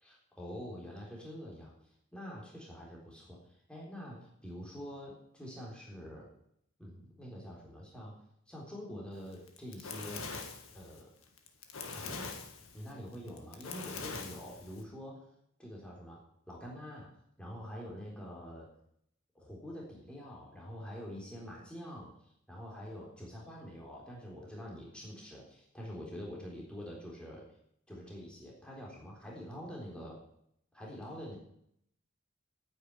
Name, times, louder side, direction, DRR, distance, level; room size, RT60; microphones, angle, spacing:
voice 1, 0.0-6.3 6.8-8.2 8.5-10.2 10.7-11.1 11.9-12.4 12.7-15.3 15.6-17.1 17.4-18.7 19.3-22.1 22.5-27.4 27.9-30.2 30.7-31.4, equal, 5° left, -3 dB, 3.7 m, -46 dB
Fire, 9.3-14.8, left 4 dB, 90° left, 1.8 m, -43 dB
9.7 x 9.4 x 9.7 m, 0.73 s
head